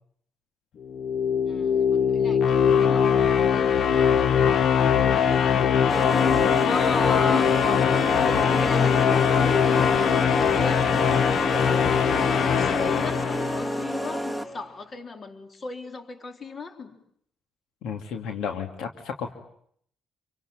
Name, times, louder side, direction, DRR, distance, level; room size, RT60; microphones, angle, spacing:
sound 1, 0.8-14.0, left 7 dB, 65° left, 1.2 m, -21 dB
voice 1, 1.5-6.2 6.6-17.0, left 3 dB, 40° left, 5 dB, 3.7 m, -37 dB
sound 2, 5.9-14.6, equal, 10° left, 2.0 m, -30 dB
voice 2, 17.8-19.3, left 6 dB, 85° left, 5 dB, 2.5 m, -32 dB
27.0 x 24.5 x 8.8 m, 0.67 s
cardioid pair, 90°, 0 cm